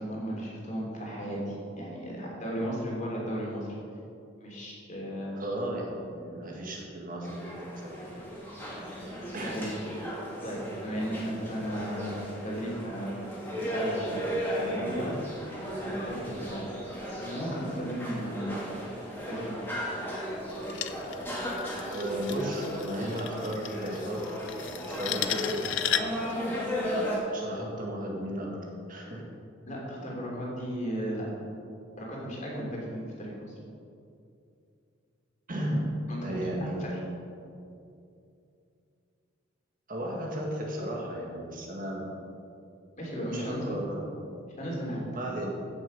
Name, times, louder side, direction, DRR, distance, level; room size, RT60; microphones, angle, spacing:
voice 1, 0.0-3.7 4.4-5.3 9.4-9.7 10.4-12.2 12.4-14.3 14.5-15.2 15.7-16.7 17.1-18.6 19.3-19.6 29.7-31.3 32.0-33.5 36.1-37.0 43.0-43.8 44.6-45.0, equal, 40° left, -3 dB, 3.2 m, -35 dB
voice 2, 5.4-8.1 9.3-9.6 21.9-24.2 24.8-25.3 27.3-28.6 28.9-29.2 35.5-35.9 36.2-37.0 39.9-42.1 43.3-44.4 45.1-45.6, right 1 dB, 45° right, -2 dB, 2.0 m, -35 dB
sound 1, 7.2-27.2, equal, 10° left, 2.7 m, -35 dB
sound 2, 20.5-26.3, left 10 dB, 65° left, 0.6 m, -35 dB
15.5 x 7.0 x 5.4 m, 2.6 s
head